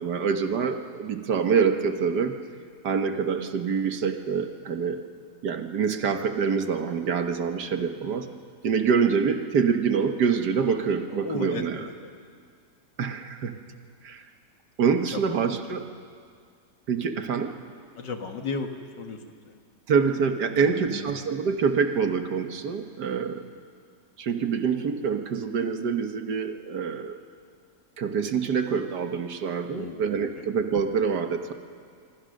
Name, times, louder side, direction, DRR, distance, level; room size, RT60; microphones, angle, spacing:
voice 1, 0.0-2.4 2.8-5.0 5.4-8.3 8.6-11.8 13.0-13.6 14.0-14.2 14.8-15.8 16.9-17.6 19.9-23.4 24.2-27.2 28.0-31.5, right 6 dB, 70° right, 6 dB, 1.8 m, -26 dB
voice 2, 11.1-12.2 15.1-15.4 15.9-16.0 18.0-19.2 19.4-19.5 20.5-21.1 29.7-30.0, left 4 dB, 80° left, 5 dB, 2.3 m, -35 dB
25.5 x 25.0 x 6.5 m, 2.2 s
omnidirectional pair, 1.9 m